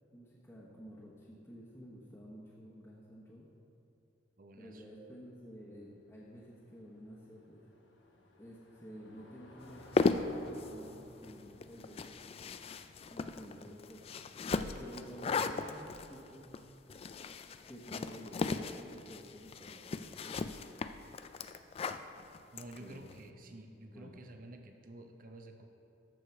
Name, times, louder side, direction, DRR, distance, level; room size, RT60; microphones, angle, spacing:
voice 1, 0.1-3.5 4.6-7.7 8.4-12.2 13.1-16.5 17.7-20.6 22.8-23.1 23.4-23.6 23.9-24.2, equal, 15° left, -7 dB, 1.1 m, -51 dB
voice 2, 4.4-4.8 22.5-25.7, right 1 dB, 50° right, 5 dB, 0.7 m, -51 dB
Car passing by / Engine, 4.9-15.6, left 1 dB, 85° left, 1.3 m, -60 dB
sound 1, 9.7-23.2, left 4 dB, 35° left, 0.3 m, -37 dB
13.5 x 4.8 x 5.9 m, 2.7 s
head